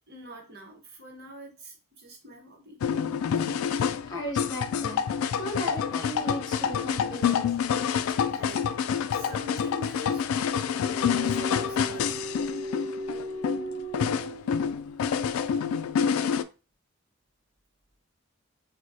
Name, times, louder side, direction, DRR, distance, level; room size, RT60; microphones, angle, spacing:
voice 1, 0.0-2.8 8.3-8.7 9.1-10.2 11.3-12.5, equal, 50° right, 1.1 m, -45 dB
sound 1, 2.8-16.4, left 7 dB, 90° left, 0.3 m, -27 dB
voice 2, 3.6-5.0 5.4-7.5, left 1 dB, 20° left, 1.2 m, -37 dB
sound 2, 10.8-14.9, right 1 dB, 70° right, 0.9 m, -37 dB
6.1 x 2.2 x 2.7 m
head